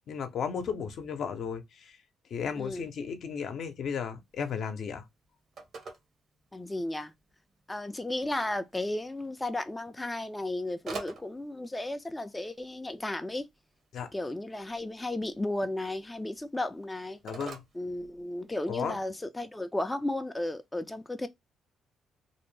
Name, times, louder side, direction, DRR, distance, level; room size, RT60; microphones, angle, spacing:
voice 1, 0.1-2.0 2.3-5.1 13.9-14.1 17.2-17.6 18.7-19.0, left 6 dB, 65° left, 0.6 m, -34 dB
Telephone, 4.2-18.7, right 4 dB, 55° right, 0.9 m, -50 dB
voice 2, 6.5-7.1 7.7-13.5 14.1-17.2 17.8-21.3, left 1 dB, 10° left, 0.3 m, -34 dB
2.5 x 2.1 x 3.1 m
cardioid pair, 90°, 0 cm